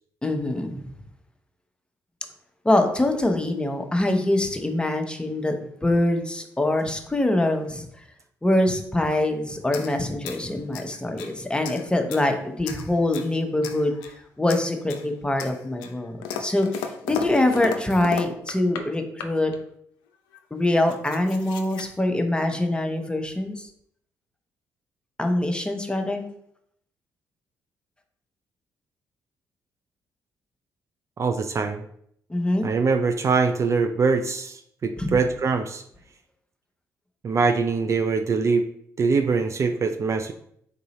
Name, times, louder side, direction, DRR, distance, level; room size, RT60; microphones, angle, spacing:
voice 1, 0.2-0.9 2.6-5.5 5.8-7.9 8.4-14.0 14.4-19.5 20.5-23.7 25.2-26.2 32.3-32.7 35.0-35.2, left 1 dB, 15° left, 5 dB, 0.8 m, -24 dB
sound 1, 9.6-11.3 11.6-12.3 12.6-13.3 13.6-14.2 14.5-15.1 15.4-18.9 19.2-19.6 20.3-20.4 20.6-21.9, left 7 dB, 80° left, 0.4 m, -35 dB
voice 2, 31.2-31.8 32.6-35.8 37.2-38.7 39.0-40.3, right 4 dB, 40° right, 7 dB, 0.4 m, -23 dB
3.9 x 3.8 x 3.0 m, 0.68 s
hypercardioid pair, 45°, 7 cm